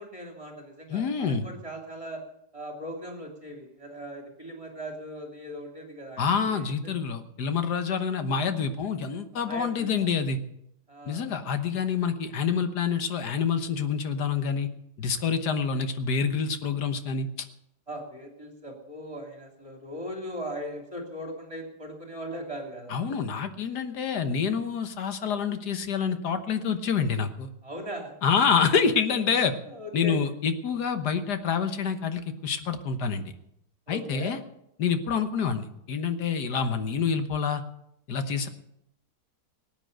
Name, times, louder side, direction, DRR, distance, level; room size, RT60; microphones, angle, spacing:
voice 1, 0.0-2.2 2.5-6.9 9.4-10.1 10.9-11.3 17.9-23.2 27.6-28.1 29.1-29.2 29.7-30.2 33.9-34.4, equal, 20° right, 1 dB, 3.0 m, -39 dB
voice 2, 0.9-1.5 6.2-10.4 11.1-14.7 15.0-17.3 22.9-27.5 28.2-29.5 29.9-33.3 33.9-34.4 34.8-37.6 38.1-38.5, left 6 dB, 80° left, 9 dB, 1.8 m, -27 dB
18.5 x 9.1 x 6.6 m, 0.79 s
omnidirectional pair, 1.7 m